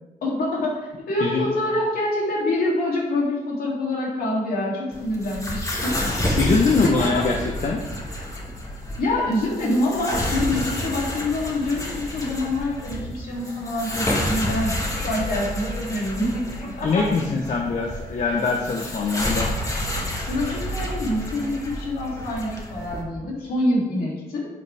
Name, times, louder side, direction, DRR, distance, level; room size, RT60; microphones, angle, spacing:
voice 1, 0.2-6.0 6.8-7.1 9.0-17.0 20.3-24.5, left 1 dB, 90° left, -4 dB, 3.1 m, -26 dB
sound 1, 4.9-23.0, left 1 dB, 20° left, 1.7 m, -29 dB
voice 2, 6.4-7.8 16.8-19.5, left 4 dB, 55° left, 1 dB, 1.0 m, -23 dB
11.0 x 6.8 x 3.5 m, 1.1 s
wide cardioid pair, 115°, 15 cm